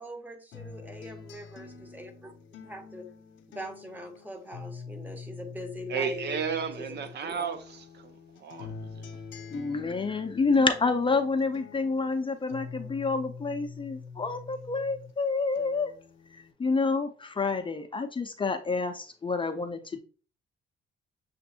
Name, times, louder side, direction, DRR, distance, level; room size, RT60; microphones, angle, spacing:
voice 1, 0.0-2.3 2.6-3.1 3.5-6.4 6.8-7.5, equal, 10° right, 0.9 m, -42 dB
sound 1, 0.5-7.2 7.5-15.2 15.6-16.5, left 5 dB, 75° left, 0.7 m, -45 dB
voice 2, 5.9-9.1, right 6 dB, 60° right, 0.6 m, -34 dB
voice 3, 9.5-15.9 16.3-20.0, left 4 dB, 25° left, 0.5 m, -28 dB
6.8 x 2.5 x 2.7 m
cardioid pair, 90°, 20 cm